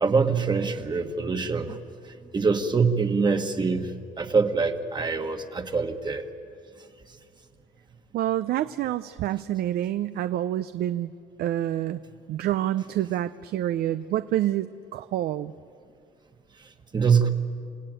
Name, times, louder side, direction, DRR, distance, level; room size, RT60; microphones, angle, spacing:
voice 1, 0.0-1.8 2.3-3.9 4.2-6.2 16.9-17.3, right 5 dB, 25° right, 6 dB, 1.5 m, -24 dB
voice 2, 8.1-11.1 11.4-12.0 12.3-15.5, right 12 dB, 65° right, 13 dB, 0.6 m, -27 dB
28.5 x 17.5 x 9.1 m, 2.4 s
cardioid pair, 110°, 17 cm